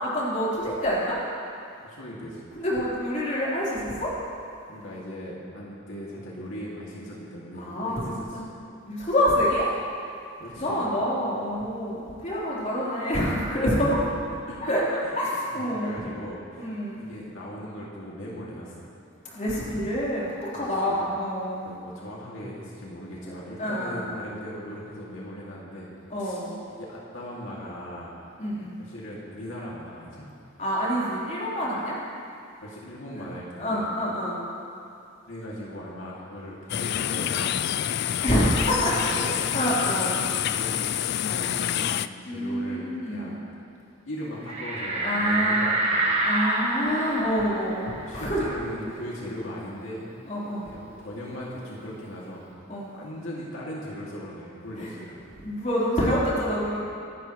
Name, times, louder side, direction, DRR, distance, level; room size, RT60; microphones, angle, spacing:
voice 1, 0.0-1.2 2.6-4.1 7.6-8.0 8.3-8.4 8.9-9.7 10.6-14.0 14.6-14.8 15.2-15.9 16.6-17.0 19.3-21.7 23.6-24.0 26.1-26.6 28.4-28.7 30.6-32.0 33.1-33.2 33.6-34.4 38.2-39.1 39.5-40.2 42.3-43.3 45.0-45.6 46.2-48.5 50.3-50.6 52.7-52.9 54.8-54.9 55.4-56.8, equal, 40° left, -7 dB, 3.8 m, -27 dB
voice 2, 1.8-2.5 4.7-8.4 10.4-10.9 14.5-14.7 15.0-15.1 15.5-16.7 17.0-18.9 20.5-21.0 21.6-25.9 26.2-28.2 28.8-30.3 32.6-33.8 35.3-37.6 38.6-39.4 40.4-43.4 44.0-46.2 48.0-50.1 50.6-52.4 52.9-55.3, equal, 85° left, -5 dB, 2.3 m, -39 dB
sound 1, 36.7-42.1, left 10 dB, 55° left, 0.3 m, -27 dB
sound 2, 44.5-49.7 50.0-50.1 50.4-52.1, right 2 dB, 30° right, 1.5 m, -28 dB
24.5 x 11.5 x 3.1 m, 2.5 s
head